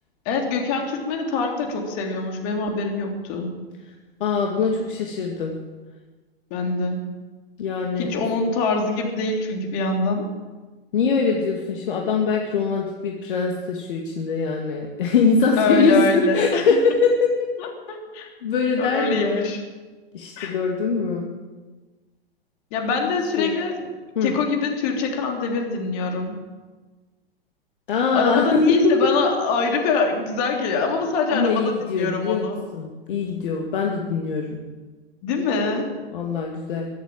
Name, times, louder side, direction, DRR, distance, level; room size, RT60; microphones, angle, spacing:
voice 1, 0.3-3.5 6.5-7.0 8.0-10.3 15.6-16.7 17.6-18.3 18.8-19.6 20.4-20.6 22.7-23.9 24.2-26.4 28.1-32.6 35.2-35.9, left 4 dB, 40° left, 2 dB, 3.6 m, -24 dB
voice 2, 4.2-5.5 7.6-8.1 10.9-17.3 18.4-19.5 20.1-21.3 23.4-23.6 24.2-24.4 27.9-28.9 31.3-32.5 32.7-34.6 36.1-36.9, left 4 dB, 60° left, 0 dB, 2.2 m, -22 dB
23.0 x 8.2 x 7.6 m, 1.3 s
figure-of-eight pair, 100°, 30 cm